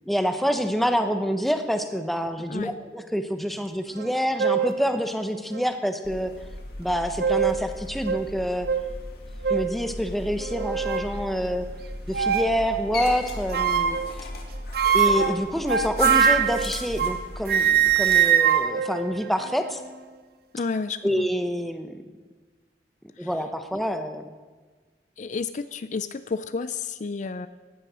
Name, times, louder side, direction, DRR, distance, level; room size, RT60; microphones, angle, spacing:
voice 1, 0.1-6.3 6.8-8.7 9.5-11.7 12.1-14.0 14.9-19.8 21.0-21.9 23.2-24.2, equal, ahead, 7 dB, 0.9 m, -27 dB
sound 1, 4.0-4.1 4.4-4.8 5.5-5.6 6.9-7.6 8.1-8.2 8.7-8.8 9.4-9.7 10.4-11.1 12.1-12.6 13.5-14.1 14.7-17.2 17.5-19.8, right 8 dB, 60° right, 0.9 m, -23 dB
sound 2, 6.0-18.2, left 2 dB, 60° left, 2.2 m, -37 dB
voice 2, 20.5-21.3 23.2-23.3 25.2-27.5, left 4 dB, 45° left, 12 dB, 0.4 m, -31 dB
16.0 x 11.0 x 6.2 m, 1.4 s
head